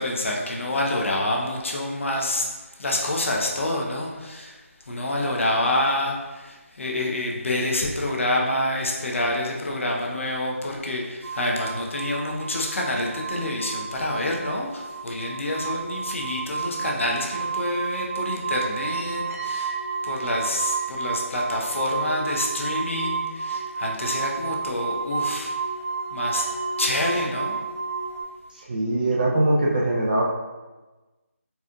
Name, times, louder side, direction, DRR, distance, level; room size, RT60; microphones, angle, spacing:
voice 1, 0.0-2.5 2.8-4.6 4.9-19.8 20.0-25.5 26.1-26.5 26.8-27.6, left 1 dB, 60° left, -1 dB, 0.7 m, -27 dB
sound 1, 11.2-28.2, right 5 dB, 80° right, 0.8 m, -31 dB
voice 2, 28.7-30.2, right 1 dB, 35° right, -2 dB, 0.4 m, -21 dB
4.1 x 2.5 x 2.4 m, 1.2 s
figure-of-eight pair, 165°, 8 cm